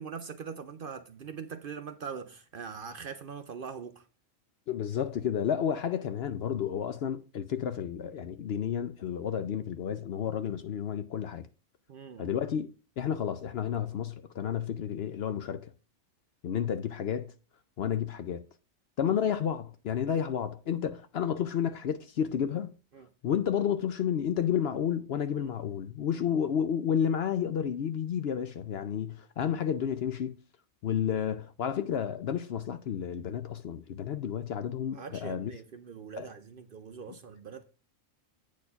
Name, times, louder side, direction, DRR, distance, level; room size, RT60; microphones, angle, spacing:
voice 1, 0.0-4.1 11.9-12.3 19.0-19.2 20.1-20.2 22.9-23.1 25.4-25.5 26.1-26.5 29.4-29.5 34.9-37.6, right 6 dB, 55° right, 0.7 m, -42 dB
voice 2, 4.7-11.5 12.2-12.7 13.0-15.7 16.4-17.3 17.8-18.4 19.0-22.8 23.2-30.4 30.8-35.5 36.2-36.3, left 8 dB, 60° left, 0.7 m, -31 dB
8.4 x 4.3 x 5.6 m
omnidirectional pair, 1.4 m